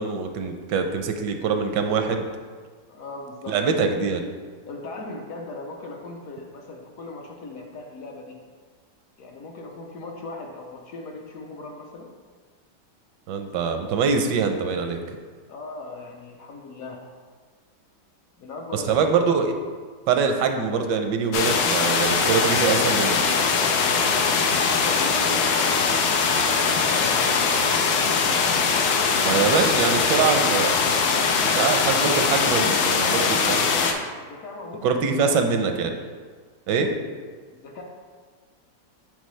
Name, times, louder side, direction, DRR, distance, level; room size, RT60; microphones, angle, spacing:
voice 1, 0.0-2.3 3.5-4.2 13.3-15.0 18.7-19.5 20.1-23.2 29.2-30.7 31.4-33.7 34.8-36.0 36.7-36.9, right 5 dB, 85° right, 6 dB, 1.2 m, -23 dB
voice 2, 2.9-3.9 4.7-8.4 9.2-12.1 15.5-17.0 18.4-19.2 24.1-28.0 34.1-34.9 35.2-35.7 37.5-37.8, left 3 dB, 65° left, 0 dB, 1.0 m, -38 dB
sound 1, 21.3-33.9, left 5 dB, 85° left, 1.3 m, -21 dB
8.0 x 3.9 x 3.2 m, 1.5 s
omnidirectional pair, 1.9 m